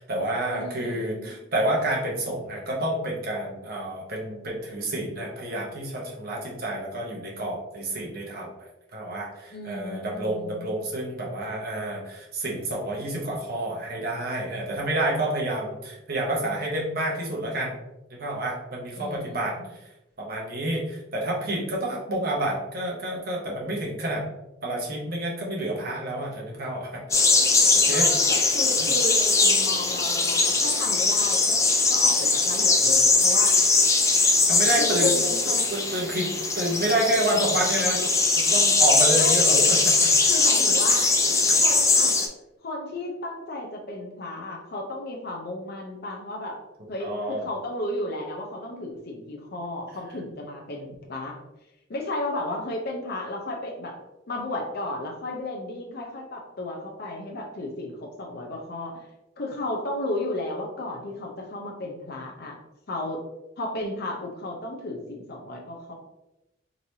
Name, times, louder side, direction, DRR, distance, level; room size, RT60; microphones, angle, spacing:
voice 1, 0.0-8.5 8.9-17.8 18.1-19.6 20.2-24.2 24.6-27.2 27.7-28.1 34.5-35.1 35.7-39.8 40.2-40.3 40.8-40.9 41.2-41.4 47.0-47.5, right 1 dB, 55° right, -3 dB, 1.1 m, -29 dB
voice 2, 0.5-1.3 9.5-10.8 18.9-19.7 27.9-33.6 34.8-35.7 39.2-39.7 40.3-41.1 41.6-42.1 42.6-46.6 46.9-51.4 51.9-54.0 54.3-59.1 59.4-62.6 62.9-63.2 63.6-65.9, left 2 dB, 55° left, -1 dB, 0.6 m, -33 dB
sound 1, 27.1-42.3, left 3 dB, 15° left, 0.4 m, -21 dB
4.0 x 3.1 x 2.7 m, 0.91 s
head